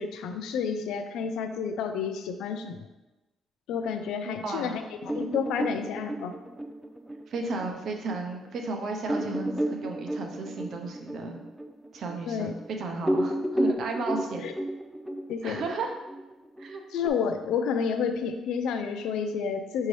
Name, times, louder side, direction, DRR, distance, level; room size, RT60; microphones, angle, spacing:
voice 1, 0.0-2.9 3.7-6.3 12.3-12.5 14.4-14.5 15.3-15.7 16.9-19.9, left 6 dB, 85° left, 8 dB, 0.4 m, -30 dB
voice 2, 4.3-4.7 7.3-11.3 11.9-14.5 15.4-15.9 16.6-16.8, right 3 dB, 65° right, 3 dB, 0.7 m, -34 dB
sound 1, 5.1-8.2 8.6-8.7 9.1-12.7 13.0-17.1, right 1 dB, 5° right, 0.3 m, -32 dB
6.0 x 2.7 x 3.2 m, 1.0 s
cardioid pair, 90°, 0 cm